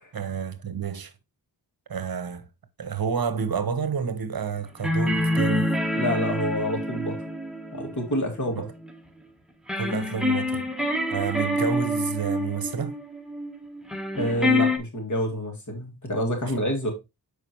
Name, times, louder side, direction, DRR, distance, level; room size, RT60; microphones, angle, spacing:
voice 1, 0.1-1.1 1.9-2.4 2.8-5.7 8.6-8.7 9.8-10.7 11.1-12.9, right 6 dB, 60° right, 0.9 m, -29 dB
sound 1, 4.8-8.9 9.7-14.8, left 1 dB, ahead, 1.1 m, -27 dB
voice 2, 5.9-7.2 7.7-8.6 14.2-16.9, equal, 45° left, 2.2 m, -27 dB
6.6 x 4.9 x 2.9 m
cardioid pair, 60°, 40 cm